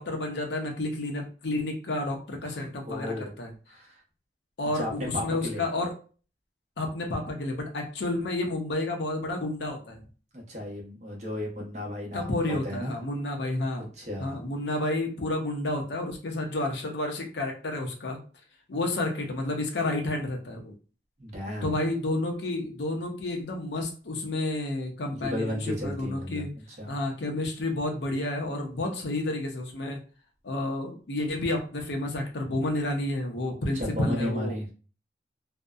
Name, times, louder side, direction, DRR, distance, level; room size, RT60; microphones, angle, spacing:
voice 1, 0.0-3.5 4.6-5.9 6.8-10.0 12.1-13.9 14.2-18.2 18.7-20.7 21.6-26.5 26.9-30.0 30.4-34.5, left 2 dB, 80° left, 3 dB, 0.6 m, -30 dB
voice 2, 2.4-3.3 3.7-4.0 4.7-5.6 10.3-13.0 13.9-14.4 21.2-21.7 25.2-27.0 33.7-34.7, left 1 dB, 40° right, -1 dB, 0.7 m, -34 dB
2.6 x 2.0 x 2.3 m, 0.36 s
head